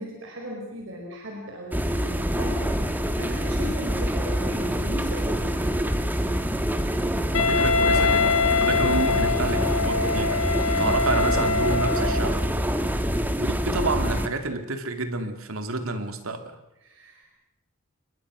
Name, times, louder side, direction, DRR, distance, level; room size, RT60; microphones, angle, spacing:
voice 1, 0.0-5.9 16.8-17.3, equal, 65° right, 0 dB, 5.1 m, -38 dB
sound 1, 1.7-14.3, equal, 10° right, 1.6 m, -26 dB
Wind instrument woodwind instrument, 7.3-12.3, left 4 dB, 90° left, 1.3 m, -24 dB
voice 2, 7.3-12.4 13.4-16.6, right 3 dB, 90° right, 7 dB, 2.7 m, -29 dB
29.0 x 22.0 x 6.3 m, 0.88 s
head